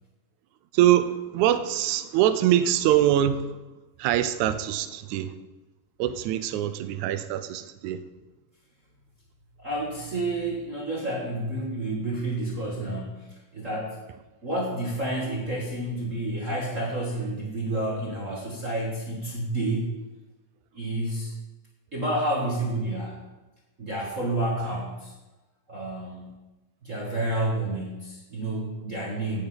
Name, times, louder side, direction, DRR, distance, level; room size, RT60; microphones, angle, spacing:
voice 1, 0.7-3.6 4.0-5.3 6.0-8.0, right 12 dB, 80° right, 12 dB, 1.7 m, -23 dB
voice 2, 9.6-14.0 14.4-19.9 20.7-21.3 21.9-23.2 23.8-25.1 25.7-26.3 26.8-29.5, right 1 dB, 30° right, -3 dB, 1.5 m, -30 dB
8.9 x 8.8 x 7.9 m, 1.1 s
omnidirectional pair, 4.1 m